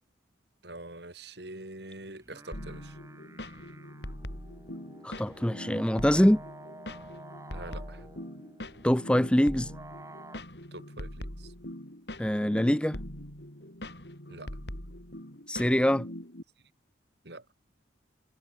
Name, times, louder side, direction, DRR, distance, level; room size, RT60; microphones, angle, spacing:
voice 1, 0.6-2.9 7.5-8.1 10.7-11.5 14.3-14.5 17.2-17.4, right 2 dB, 60° right, 4.6 m, -44 dB
sound 1, 2.1-10.4, right 2 dB, 15° right, 4.4 m, -50 dB
sound 2, 2.5-16.4, left 1 dB, 60° left, 5.9 m, -42 dB
voice 2, 5.0-6.4 8.8-9.7 12.2-13.0 15.5-16.1, equal, 5° left, 0.6 m, -24 dB
head